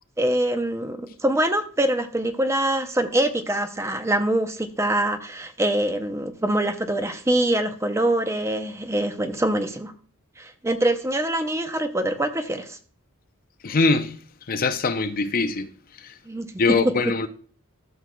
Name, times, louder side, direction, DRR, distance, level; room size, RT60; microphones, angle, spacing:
voice 1, 0.2-9.9 10.4-12.8 16.3-16.5 16.8-16.9, right 1 dB, 10° right, 0.5 m, -24 dB
voice 2, 13.6-14.2 14.5-15.7 16.0-16.1 16.6-17.3, left 3 dB, 40° left, 0.5 m, -22 dB
12.5 x 6.3 x 2.2 m
head